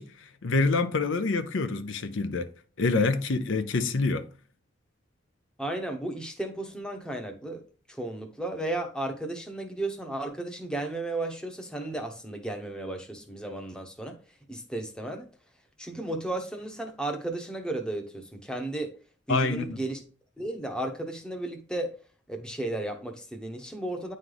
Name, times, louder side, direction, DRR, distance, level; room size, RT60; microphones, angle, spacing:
voice 1, 0.0-2.5 2.8-4.3 19.3-19.8, left 3 dB, 75° left, 0.6 m, -26 dB
voice 2, 5.6-7.6 7.9-14.2 14.5-15.3 15.8-18.9 19.3-20.0 20.4-21.9 22.3-24.1, right 2 dB, 5° left, 0.8 m, -34 dB
9.5 x 3.2 x 3.8 m
head